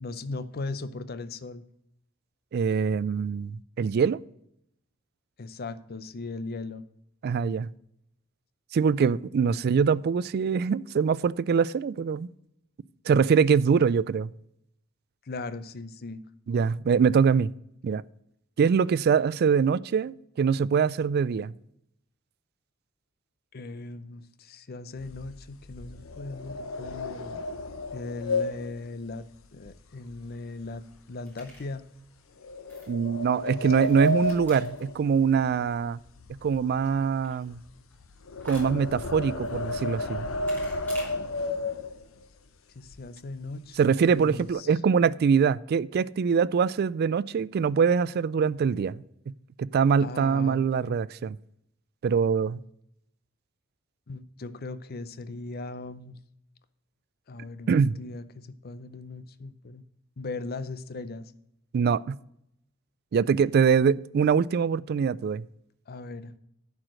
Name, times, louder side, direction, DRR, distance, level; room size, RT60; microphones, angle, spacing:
voice 1, 0.0-1.6 5.4-6.8 9.5-9.6 15.2-16.2 23.5-27.4 27.9-30.8 31.1-31.8 42.7-44.7 50.0-50.6 54.1-56.2 57.3-59.8 60.2-61.3 65.9-66.4, left 3 dB, 50° left, 0.6 m, -38 dB
voice 2, 2.5-4.2 7.2-7.7 8.7-12.3 13.1-14.3 16.5-17.5 17.8-18.0 18.6-21.5 32.9-36.0 36.4-37.6 38.5-40.3 43.8-49.0 49.6-51.4 52.0-52.6 57.7-57.9 61.7-62.2 63.1-65.4, right 6 dB, 50° right, 0.3 m, -23 dB
sound 1, 25.0-30.3 30.6-31.0 31.5-31.6 32.4-35.7 36.0-42.3 42.9-43.0 43.3-43.5 43.9-44.5, left 2 dB, 90° left, 0.8 m, -33 dB
sound 2, 29.9-41.1, left 1 dB, 10° left, 3.2 m, -52 dB
11.5 x 4.8 x 6.2 m
head